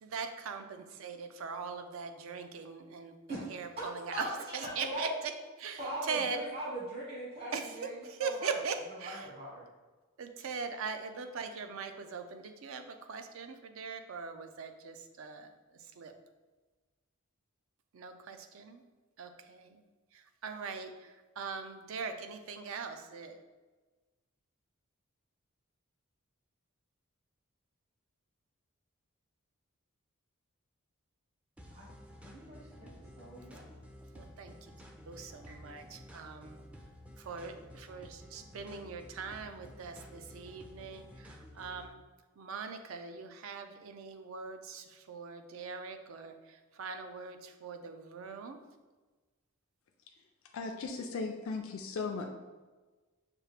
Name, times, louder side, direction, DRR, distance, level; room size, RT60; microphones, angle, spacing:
voice 1, 0.0-3.1 3.5-4.2 4.5-5.1 5.6-5.8 6.1-6.4 7.5-9.2 10.2-15.5 16.0-16.1 17.9-18.8 19.2-19.8 20.1-23.4 34.1-34.7 35.1-36.6 37.2-41.9 42.4-48.6, right 5 dB, 70° right, 7 dB, 0.4 m, -41 dB
voice 2, 4.1-5.2 5.8-8.6 9.0-9.6 31.7-31.9 32.2-33.8, right 1 dB, 50° right, -7 dB, 1.3 m, -40 dB
sound 1, 31.6-41.9, equal, 5° right, 0.3 m, -52 dB
voice 3, 50.5-52.3, left 4 dB, 70° left, 3 dB, 0.4 m, -37 dB
5.9 x 2.4 x 3.3 m, 1.3 s
head